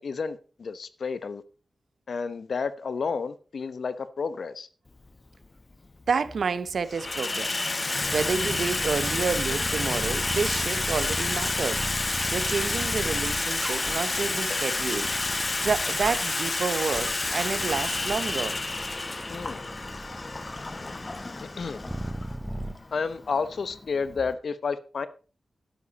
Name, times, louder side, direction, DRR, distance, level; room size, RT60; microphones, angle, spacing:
voice 1, 0.0-1.4 2.1-4.7 15.4-15.5 19.3-19.6 21.6-21.8 22.9-25.1, left 5 dB, 70° left, 1.0 m, -31 dB
Water tap faucet / Sink (filling or washing), 5.0-5.1 6.0-6.4 6.7-24.3, left 2 dB, 30° left, 1.0 m, -30 dB
voice 2, 6.1-7.7 8.1-11.9 12.3-15.1 15.6-18.6, right 5 dB, 75° right, 0.9 m, -29 dB
sound 1, 8.0-22.7, right 1 dB, 5° right, 0.9 m, -38 dB
12.0 x 10.0 x 4.2 m
wide cardioid pair, 110°, 0 cm